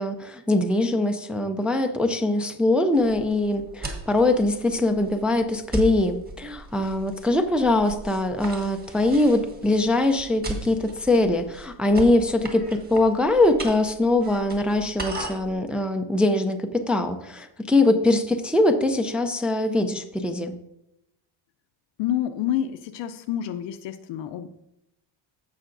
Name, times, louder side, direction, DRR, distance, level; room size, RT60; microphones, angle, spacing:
voice 1, 0.0-20.5, left 2 dB, 5° right, 5 dB, 0.3 m, -22 dB
sound 1, 2.9-15.5, right 1 dB, 20° right, 1.6 m, -38 dB
voice 2, 22.0-24.5, left 11 dB, 65° left, 8 dB, 0.7 m, -28 dB
15.5 x 5.7 x 2.6 m, 0.85 s
cardioid pair, 140°, 47 cm